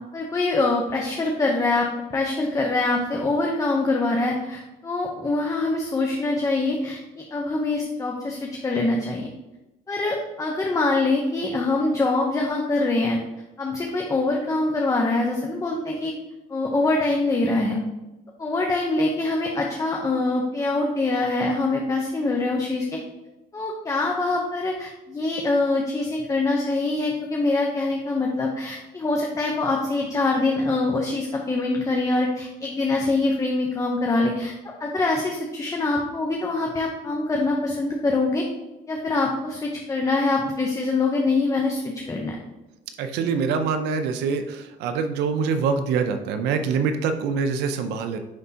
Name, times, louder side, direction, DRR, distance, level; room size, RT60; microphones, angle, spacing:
voice 1, 0.1-9.3 9.9-13.2 13.6-16.1 16.5-17.8 18.4-23.0 23.5-34.5 34.8-38.4 38.9-42.4, left 2 dB, 20° left, 0 dB, 0.7 m, -24 dB
voice 2, 43.0-48.2, right 5 dB, 85° right, 7 dB, 0.6 m, -25 dB
9.6 x 3.4 x 2.8 m, 1.0 s
cardioid pair, 110°, 17 cm